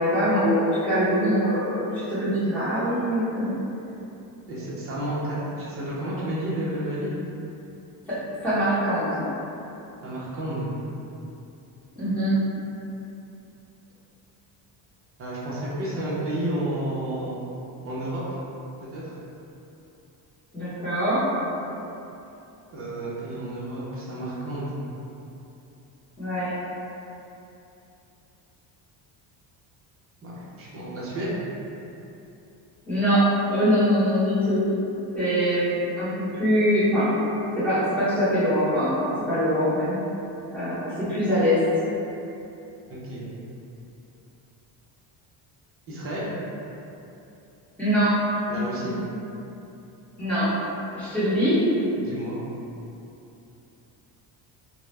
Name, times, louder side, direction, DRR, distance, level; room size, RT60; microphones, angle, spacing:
voice 1, 0.0-3.6 8.1-9.3 11.9-12.4 20.5-21.3 26.2-26.5 32.9-34.6 35.1-37.1 37.6-40.0 40.5-41.6 47.8-48.2 50.2-50.5 50.9-51.6, equal, 5° left, -15 dB, 0.9 m, -23 dB
voice 2, 4.5-7.1 10.0-10.7 15.2-17.3 17.8-18.2 18.9-19.2 22.7-24.8 30.2-31.4 42.9-43.3 45.9-46.3 48.5-49.0 52.0-52.4, right 1 dB, 30° right, -8 dB, 0.5 m, -31 dB
2.2 x 2.0 x 3.1 m, 2.9 s
cardioid pair, 155°, 45 cm